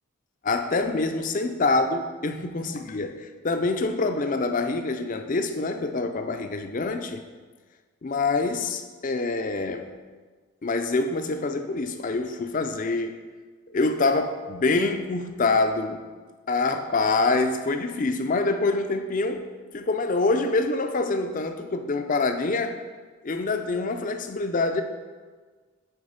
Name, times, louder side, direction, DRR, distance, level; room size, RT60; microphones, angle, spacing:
voice 1, 0.4-7.2 8.0-9.8 10.6-13.2 13.7-16.0 16.5-19.5 19.7-22.8 23.2-24.8, left 3 dB, 35° left, 7 dB, 0.4 m, -25 dB
7.9 x 4.0 x 5.1 m, 1.4 s
head